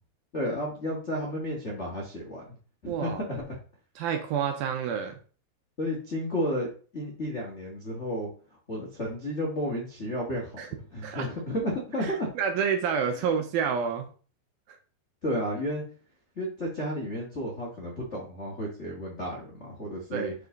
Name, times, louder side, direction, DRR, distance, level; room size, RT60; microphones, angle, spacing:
voice 1, 0.3-2.5 2.8-3.6 5.8-8.3 8.7-10.5 10.9-12.3 15.2-15.8 16.3-20.3, equal, 80° left, -3 dB, 0.6 m, -32 dB
voice 2, 2.9-3.2 4.0-5.2 10.6-10.7 11.0-11.3 12.0-14.1 14.7-14.8 20.1-20.3, right 7 dB, 75° right, 5 dB, 2.4 m, -29 dB
6.2 x 5.4 x 3.8 m, 0.39 s
omnidirectional pair, 4.8 m